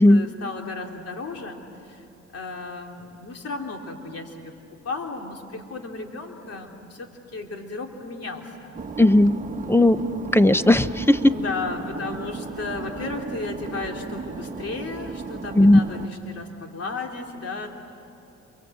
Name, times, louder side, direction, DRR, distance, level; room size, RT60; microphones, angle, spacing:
voice 1, 0.0-2.0 2.3-4.5 4.8-8.9 11.3-17.7, left 3 dB, 55° left, 2 dB, 3.3 m, -34 dB
sound 1, 8.7-16.1, right 4 dB, 25° right, 1.5 m, -35 dB
voice 2, 9.0-9.4 9.7-10.0 10.3-11.3 15.5-15.8, left 1 dB, 10° left, 13 dB, 0.7 m, -16 dB
28.5 x 23.5 x 8.0 m, 2.8 s
cardioid pair, 90°, 30 cm